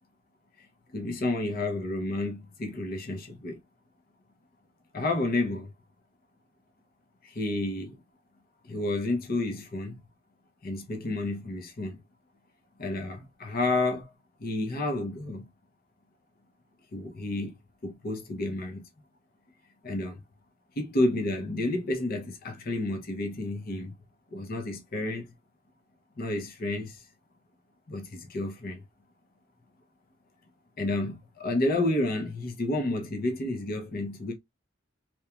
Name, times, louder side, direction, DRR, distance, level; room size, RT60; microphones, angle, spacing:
voice 1, 0.9-3.6 4.9-5.7 7.2-8.0 8.6-10.0 10.6-12.0 12.8-14.1 14.4-15.5 16.9-17.6 17.8-18.8 19.8-20.2 20.8-23.9 24.3-25.3 26.2-27.0 27.9-28.8 30.8-34.3, left 2 dB, 45° left, 0.6 m, -30 dB
2.9 x 2.2 x 2.3 m
head